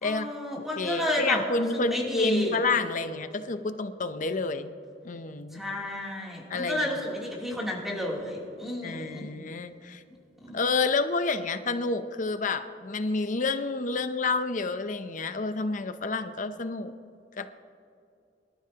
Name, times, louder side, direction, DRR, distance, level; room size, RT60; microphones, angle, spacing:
voice 1, 0.0-2.6 5.5-9.2 10.4-10.6, left 1 dB, ahead, -4 dB, 3.0 m, -31 dB
voice 2, 0.8-4.7 5.0-5.6 6.5-6.9 8.8-10.0 10.5-16.9 17.4-17.5, left 3 dB, 45° left, 10 dB, 0.6 m, -29 dB
24.5 x 13.0 x 2.9 m, 2.5 s
head